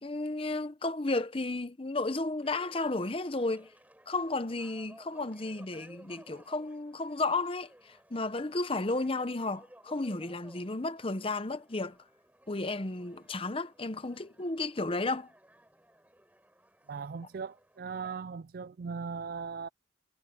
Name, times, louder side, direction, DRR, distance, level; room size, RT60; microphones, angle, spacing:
voice 1, 0.0-3.7 4.1-11.9 12.5-15.3, left 2 dB, 30° left, 0.9 m, -33 dB
sound 1, 2.4-18.2, right 1 dB, 10° right, 7.1 m, -59 dB
voice 2, 16.9-19.7, right 5 dB, 55° right, 0.4 m, -38 dB
head